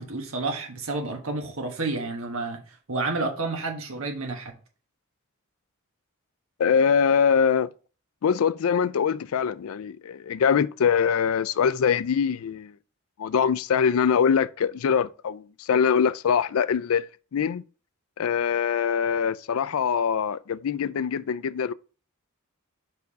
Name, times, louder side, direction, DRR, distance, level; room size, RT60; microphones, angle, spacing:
voice 1, 0.0-4.5, right 3 dB, 75° right, 1.2 m, -30 dB
voice 2, 6.6-7.7 8.2-12.7 13.2-17.6 18.2-21.7, left 7 dB, 80° left, 0.4 m, -23 dB
5.2 x 4.7 x 4.7 m
head